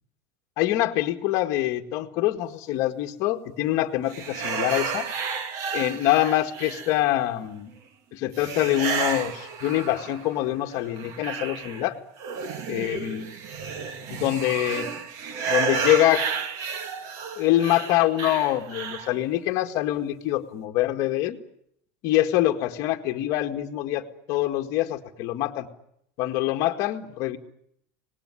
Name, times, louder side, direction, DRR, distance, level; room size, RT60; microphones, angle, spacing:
voice 1, 0.6-5.1 5.7-7.7 8.1-12.0 12.7-13.3 14.1-14.9 15.5-16.3 17.4-21.4 22.0-25.7 26.2-27.4, left 14 dB, 40° left, 6 dB, 1.9 m, -25 dB
sound 1, 4.1-7.3 8.3-10.4 10.7-19.2, right 6 dB, 40° right, 1.9 m, -32 dB
25.0 x 20.0 x 9.9 m, 0.73 s
supercardioid pair, 170°, 9 cm